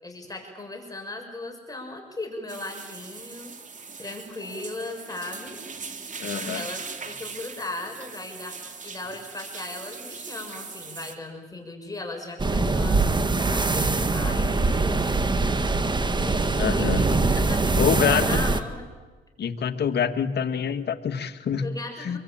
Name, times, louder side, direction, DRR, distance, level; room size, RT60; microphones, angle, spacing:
voice 1, 0.0-3.5 4.0-5.6 6.4-8.6 8.8-13.0 13.5-15.0 16.2-17.8 18.1-18.9 21.6-22.2, left 2 dB, 20° left, 3 dB, 6.4 m, -37 dB
sound 1, 2.5-11.1, right 5 dB, 40° right, 2.7 m, -40 dB
voice 2, 6.2-6.6 16.6-17.0 17.8-18.4 19.4-21.6 22.0-22.2, left 7 dB, 55° left, 8 dB, 1.9 m, -26 dB
sound 2, 12.4-18.6, right 3 dB, 20° right, 1.7 m, -23 dB
26.5 x 23.0 x 8.9 m, 1.3 s
cardioid pair, 90°, 20 cm